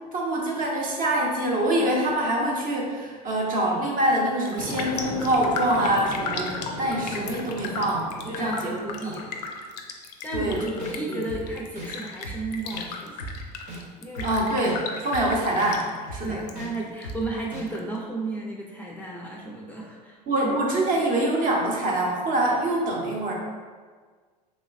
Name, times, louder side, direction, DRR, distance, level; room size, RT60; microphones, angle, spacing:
voice 1, 0.1-8.8 9.1-9.2 10.3-11.2 14.2-16.4 20.3-23.3, right 1 dB, 40° right, -2 dB, 0.8 m, -25 dB
Raindrop, 4.0-4.2 4.4-16.5 16.8-17.8 18.2-18.3, left 4 dB, 80° left, 0.4 m, -36 dB
sound 1, 4.6-9.5, equal, 90° right, 1.2 m, -37 dB
voice 2, 8.2-9.4 10.2-13.3 14.0-14.3 16.2-20.6, right 2 dB, 10° left, -3 dB, 0.4 m, -33 dB
sound 2, 10.3-10.4 10.8-10.9 11.3-11.4 11.7-11.9 12.2-12.4 12.7-12.8 13.2-13.3 13.7-13.8 14.2-14.3 14.6-14.8 15.1-15.2 15.6-15.7 16.1-16.2 16.6-16.7 17.0-17.2 17.5-17.6, right 1 dB, 70° right, 0.9 m, -36 dB
3.1 x 3.0 x 2.4 m, 1.5 s
hypercardioid pair, 80°, 21 cm